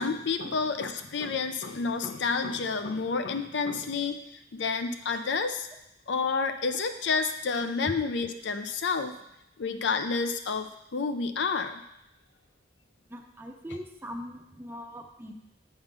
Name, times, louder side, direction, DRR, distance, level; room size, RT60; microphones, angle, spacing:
voice 1, 0.0-4.2 4.5-5.7 6.1-9.1 9.6-11.8, left 4 dB, 65° left, 8 dB, 0.5 m, -29 dB
voice 2, 13.1-15.3, equal, 10° right, 3 dB, 0.6 m, -41 dB
7.7 x 3.7 x 5.9 m, 0.83 s
head